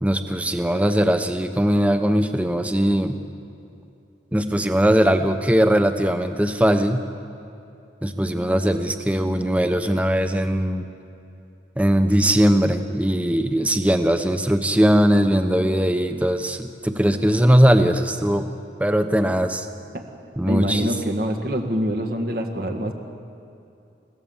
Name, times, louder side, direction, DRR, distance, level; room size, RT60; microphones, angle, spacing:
voice 1, 0.0-3.2 4.3-7.0 8.0-10.9 11.8-18.5 18.8-19.7 20.4-20.9, equal, 10° right, 7 dB, 1.0 m, -20 dB
voice 2, 20.4-22.9, equal, 55° right, 3 dB, 1.9 m, -25 dB
29.5 x 16.5 x 7.3 m, 2.7 s
head